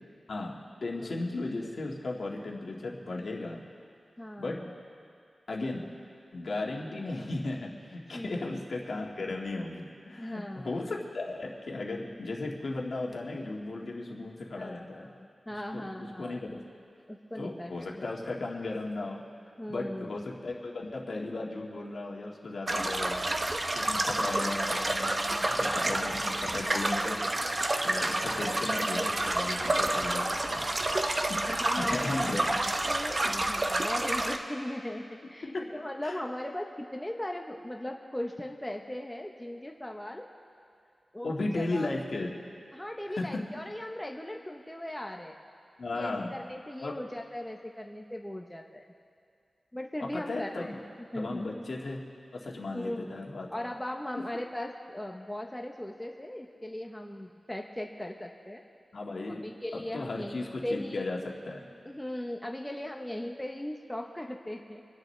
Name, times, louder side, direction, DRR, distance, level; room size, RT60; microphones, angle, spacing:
voice 1, 0.8-3.6 4.4-4.6 5.5-5.9 6.3-15.1 15.5-16.6 17.4-19.2 19.7-23.2 23.7-27.2 27.8-30.7 31.3-32.6 35.4-35.7 36.0-36.2 41.2-42.4 43.0-43.3 45.8-46.3 46.8-46.9 50.0-50.8 51.1-52.0 52.3-53.5 58.9-59.4 59.9-61.2 61.4-61.7, left 2 dB, 70° left, -1 dB, 1.9 m, -36 dB
voice 2, 4.2-4.8 8.1-8.5 10.2-10.9 14.5-16.4 17.1-17.9 18.2-18.3 19.6-20.1 31.5-40.3 41.1-41.9 42.7-45.3 45.9-48.8 49.7-50.8 51.1-51.5 52.7-53.2 53.5-58.6 59.1-61.0 61.8-64.8, left 1 dB, 10° left, 2 dB, 0.9 m, -38 dB
sound 1, 22.7-34.4, right 1 dB, 35° right, 0.8 m, -29 dB
27.0 x 10.5 x 3.3 m, 2.3 s
wide cardioid pair, 85°, 0 cm